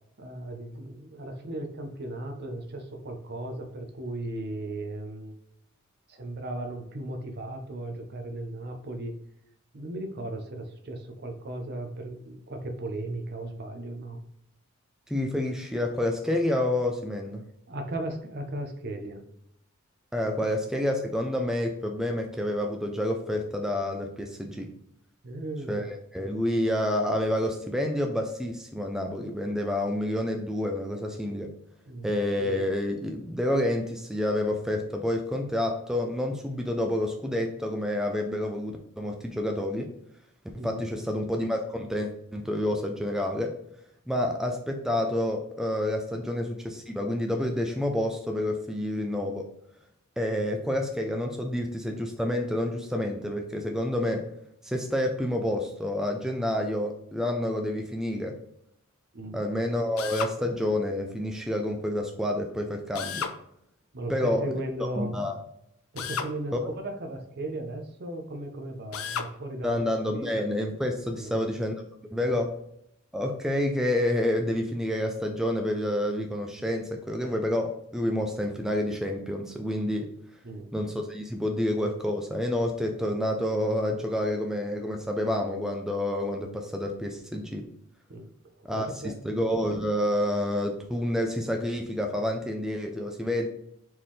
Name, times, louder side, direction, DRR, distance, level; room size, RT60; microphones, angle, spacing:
voice 1, 0.2-5.4 6.1-9.1 9.7-14.2 17.7-19.2 25.2-25.9 31.9-32.2 40.6-40.9 44.2-44.3 59.1-59.4 63.9-65.2 65.9-69.8 70.1-70.4 71.1-71.4 72.2-72.4 80.4-80.7 88.1-89.2, right 1 dB, 50° right, 5 dB, 0.8 m, -36 dB
voice 2, 15.1-17.4 20.1-24.7 25.7-31.5 32.0-39.9 40.5-43.6 44.1-49.5 50.2-54.3 54.6-58.4 59.3-63.3 64.1-64.5 65.0-65.3 69.6-71.8 72.1-72.5 73.1-80.1 80.7-87.6 88.6-93.5, left 1 dB, ahead, 2 dB, 0.4 m, -28 dB
Drill, 60.0-60.4 62.9-63.4 66.0-66.3 68.9-69.3, left 7 dB, 80° left, 0.5 m, -33 dB
4.5 x 3.7 x 3.2 m, 0.76 s
head